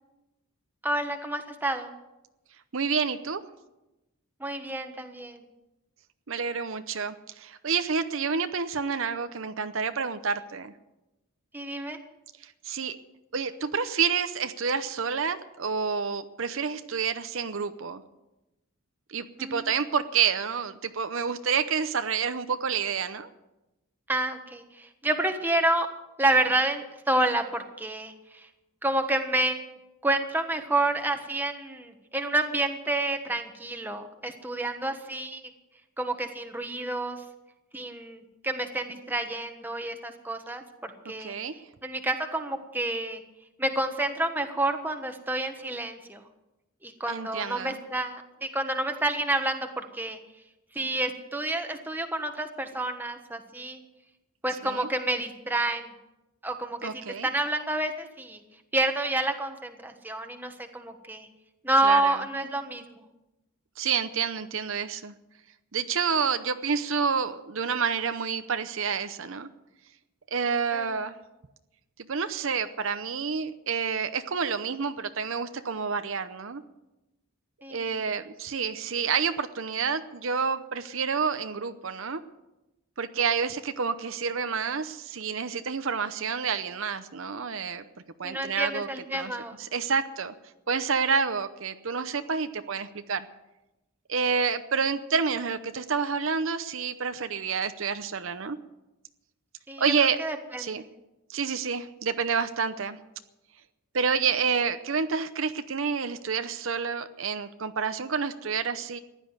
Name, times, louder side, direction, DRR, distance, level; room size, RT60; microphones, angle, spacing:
voice 1, 0.8-1.9 4.4-5.4 11.5-12.0 19.4-19.7 24.1-25.9 26.2-28.5 28.8-29.6 30.0-35.4 36.0-37.2 37.7-41.3 41.8-43.2 43.6-46.2 46.8-50.2 50.7-53.8 54.4-55.9 56.4-58.4 58.7-61.3 61.6-63.0 70.7-71.0 77.6-77.9 88.2-89.6 99.7-99.9 100.2-100.8, right 2 dB, 10° right, 5 dB, 1.3 m, -29 dB
voice 2, 2.7-3.4 6.3-10.7 12.4-13.0 13.3-18.0 19.1-23.3 41.2-41.5 47.1-47.8 54.6-54.9 56.8-57.3 61.8-62.2 63.8-65.1 65.7-69.5 70.3-71.1 72.1-76.6 77.7-82.2 83.0-87.8 88.2-88.9 89.1-90.3 90.7-93.3 94.1-98.6 99.8-100.2 100.6-100.8 101.3-103.0 103.9-109.0, right 6 dB, 60° right, 10 dB, 0.7 m, -29 dB
15.5 x 11.0 x 8.0 m, 0.98 s
head